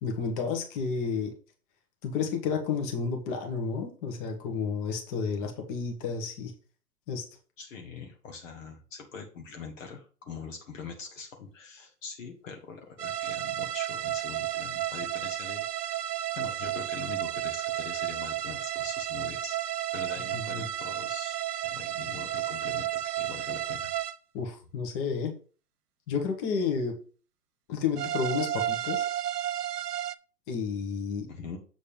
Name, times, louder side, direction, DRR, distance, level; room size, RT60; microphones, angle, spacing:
voice 1, 0.0-1.3 2.0-6.5 7.1-7.2 20.3-20.7 24.3-25.3 26.1-26.9 27.7-29.1 30.5-31.3, left 5 dB, 30° left, 4 dB, 1.7 m, -31 dB
voice 2, 7.6-19.6 19.9-23.9 31.3-31.6, left 5 dB, 55° left, 2 dB, 1.6 m, -43 dB
sound 1, 13.0-24.2 28.0-30.1, right 12 dB, 75° right, 0.6 m, -32 dB
7.4 x 4.2 x 5.2 m, 0.39 s
hypercardioid pair, 130°, 47 cm